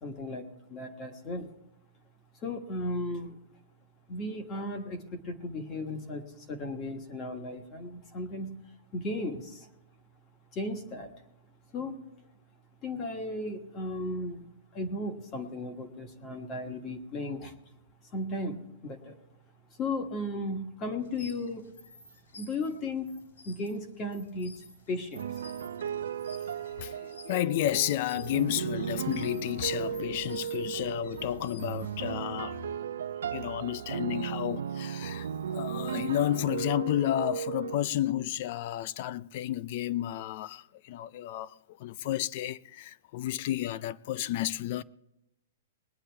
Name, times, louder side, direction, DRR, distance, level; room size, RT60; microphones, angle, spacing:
voice 1, 0.0-1.5 2.4-3.4 4.1-9.7 10.5-11.1 11.7-12.0 12.8-14.4 14.7-17.5 18.1-19.2 19.8-21.7 22.3-23.1 23.4-24.5 24.9-25.3, left 2 dB, 20° left, 1.3 m, -35 dB
sound 1, 21.0-32.3, left 3 dB, 85° left, 4.7 m, -54 dB
sound 2, 25.1-37.8, right 8 dB, 85° right, 0.6 m, -36 dB
voice 2, 26.8-32.6 33.3-44.8, left 13 dB, 35° left, 0.4 m, -32 dB
21.5 x 9.8 x 3.4 m
hypercardioid pair, 175°, 0 cm